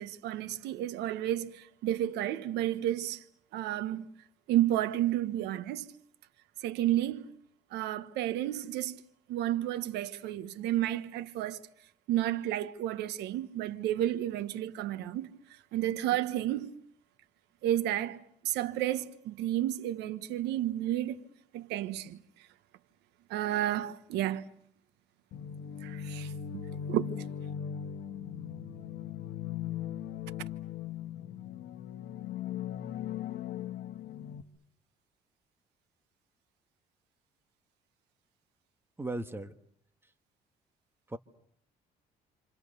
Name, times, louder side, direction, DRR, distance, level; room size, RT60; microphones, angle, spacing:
voice 1, 0.0-3.2 3.5-4.1 4.5-5.9 6.6-7.3 7.7-9.0 9.3-11.6 12.1-15.3 15.7-16.7 17.6-21.2 21.5-22.2 23.3-24.5 25.8-26.6 26.9-27.1, right 13 dB, 85° right, 1.3 m, -31 dB
sound 1, 25.3-34.4, left 9 dB, 65° left, 1.6 m, -39 dB
voice 2, 39.0-39.5 41.1-41.2, right 2 dB, 15° right, 1.5 m, -36 dB
28.5 x 27.0 x 6.8 m
cardioid pair, 110°, 17 cm